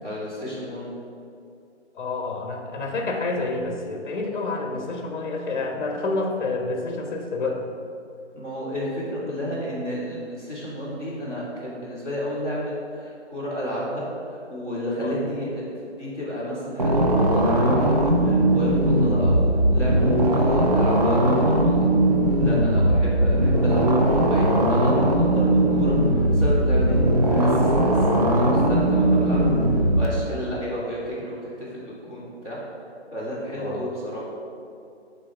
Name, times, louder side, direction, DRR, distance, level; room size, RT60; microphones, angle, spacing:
voice 1, 0.0-0.9 8.3-21.7 22.3-29.4 29.9-32.6 33.1-34.2, equal, 10° right, -11 dB, 1.5 m, -31 dB
voice 2, 1.9-7.7 15.0-15.2 22.8-23.0 33.6-33.8, left 3 dB, 45° left, 2 dB, 1.1 m, -28 dB
sound 1, 16.8-30.1, right 1 dB, 35° right, 0.6 m, -19 dB
7.5 x 4.1 x 5.9 m, 2.5 s
hypercardioid pair, 165°, 35 cm